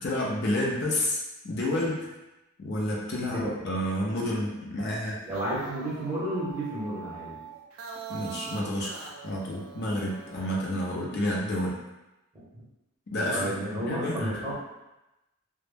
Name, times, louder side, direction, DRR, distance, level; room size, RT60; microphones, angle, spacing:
voice 1, 0.0-2.1 2.6-5.2 8.1-11.8 13.1-13.5 13.8-14.4, left 1 dB, 50° left, -3 dB, 0.4 m, -30 dB
voice 2, 3.3-3.8 5.2-7.4 12.3-12.6 13.3-14.5, right 1 dB, 15° right, -8 dB, 0.7 m, -32 dB
sound 1, 5.1-10.6, right 5 dB, 70° right, 0.3 m, -43 dB
2.0 x 2.0 x 3.2 m, 0.96 s
head